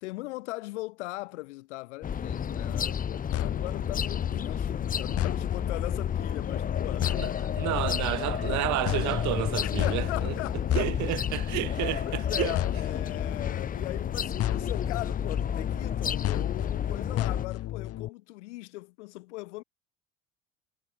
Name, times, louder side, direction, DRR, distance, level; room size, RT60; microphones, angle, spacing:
voice 1, 0.0-7.1 7.7-7.9 9.6-10.9 12.0-19.6, left 21 dB, 60° left, 2.2 m, -39 dB
sound 1, 2.0-17.5, left 8 dB, 20° left, 0.8 m, -31 dB
sound 2, 3.3-18.1, left 14 dB, 40° left, 1.2 m, -34 dB
voice 2, 7.2-10.3 10.7-12.5, right 20 dB, 45° right, 1.2 m, -31 dB
figure-of-eight pair, 65°, 39 cm